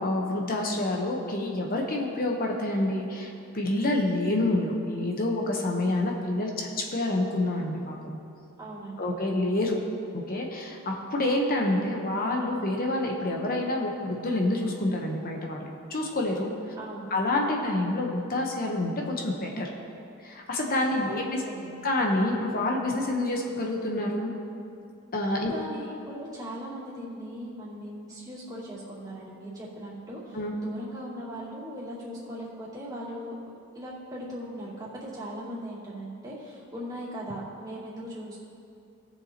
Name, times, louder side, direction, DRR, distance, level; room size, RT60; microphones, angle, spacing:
voice 1, 0.0-8.2 9.0-9.8 10.1-16.5 17.1-19.7 20.2-21.4 21.8-24.3 25.1-25.5 30.3-30.5, left 1 dB, 45° left, 0 dB, 1.0 m, -28 dB
voice 2, 8.6-9.1 16.8-17.1 21.0-21.8 25.5-38.4, equal, 20° right, -8 dB, 2.7 m, -39 dB
18.0 x 6.9 x 2.9 m, 2.6 s
head